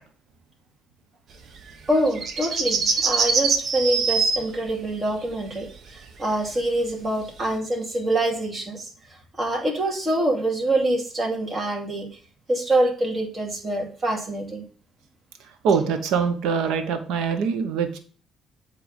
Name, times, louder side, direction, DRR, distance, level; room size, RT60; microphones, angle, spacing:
sound 1, 1.7-4.4 6.4-6.5 7.5-7.6, right 5 dB, 60° right, 1.2 m, -23 dB
voice 1, 1.9-8.9 9.4-12.1 12.5-14.6, right 1 dB, 30° right, 0 dB, 2.4 m, -25 dB
voice 2, 15.6-18.0, right 6 dB, 85° right, 8 dB, 0.9 m, -23 dB
7.8 x 3.4 x 5.1 m, 0.41 s
cardioid pair, 80°, 0 cm